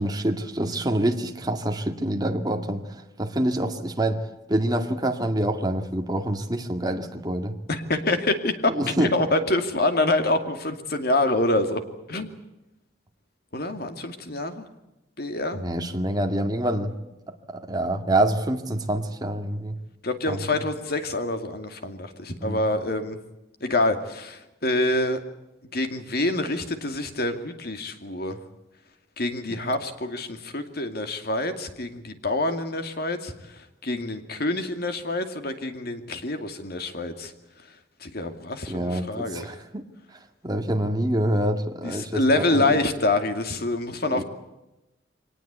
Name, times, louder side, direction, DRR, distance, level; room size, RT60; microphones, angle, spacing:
voice 1, 0.0-2.8 3.2-4.2 4.5-7.5 8.7-9.1 15.5-16.9 17.5-19.8 20.3-20.4 22.4-22.6 38.7-39.8 40.4-42.8 44.0-44.2, right 1 dB, 20° right, 5 dB, 2.1 m, -26 dB
voice 2, 7.7-11.8 12.1-12.3 13.5-14.7 15.2-15.6 20.0-23.2 23.6-25.2 25.7-28.4 29.2-37.3 38.0-39.5 41.8-44.2, left 2 dB, 55° left, 7 dB, 2.5 m, -26 dB
24.0 x 19.0 x 8.2 m, 0.97 s
head